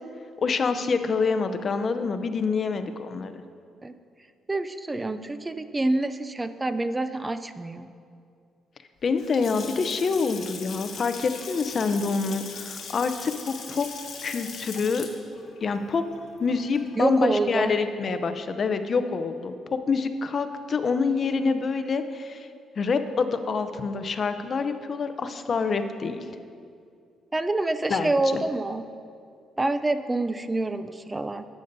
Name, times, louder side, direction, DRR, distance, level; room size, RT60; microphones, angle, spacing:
voice 1, 0.4-3.3 9.0-13.9 14.2-15.1 15.6-16.0 16.4-22.5 22.8-26.3 27.9-28.4, left 4 dB, 45° left, 9 dB, 0.5 m, -26 dB
voice 2, 4.5-7.9 17.0-17.7 27.3-28.8 29.6-31.5, right 2 dB, 20° right, 11 dB, 0.4 m, -26 dB
Water tap faucet / Sink (filling or washing) / Splash splatter, 9.1-17.1, left 5 dB, 60° left, 1.3 m, -40 dB
12.0 x 9.2 x 2.6 m, 2.3 s
cardioid pair, 90°, 0 cm